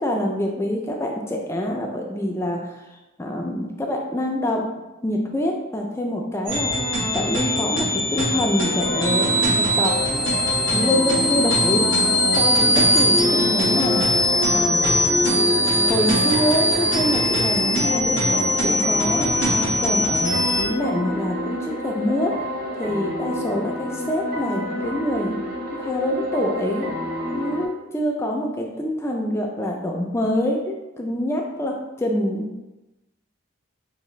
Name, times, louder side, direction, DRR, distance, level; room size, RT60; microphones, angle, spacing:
voice 1, 0.0-2.8 3.2-4.7 5.0-9.9 10.7-11.9 12.3-14.0 14.5-15.0 15.9-18.4 18.6-22.3 22.8-25.4 25.7-26.9 27.3-32.6, left 1 dB, 15° left, 0 dB, 0.3 m, -25 dB
sound 1, 6.5-20.6, equal, 70° right, 1.1 m, -21 dB
sound 2, 8.6-27.7, left 1 dB, 45° right, 0.7 m, -29 dB
4.7 x 2.6 x 3.1 m, 1.0 s
head